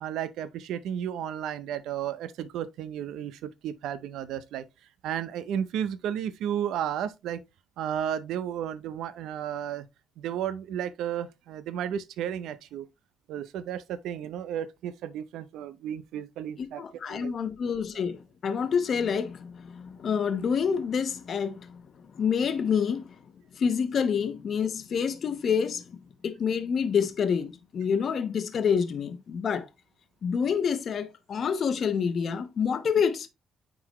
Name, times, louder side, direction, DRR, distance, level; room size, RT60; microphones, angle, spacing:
voice 1, 0.0-4.6 5.0-7.4 7.8-9.9 10.2-12.9 13.3-17.3 17.9-18.0, right 9 dB, 85° right, 0.6 m, -33 dB
voice 2, 16.6-21.8 22.1-23.1 23.5-25.8 26.2-29.7 30.2-33.3, left 6 dB, 55° left, 1.0 m, -27 dB
9.4 x 3.8 x 3.0 m
cardioid pair, 90°, 0 cm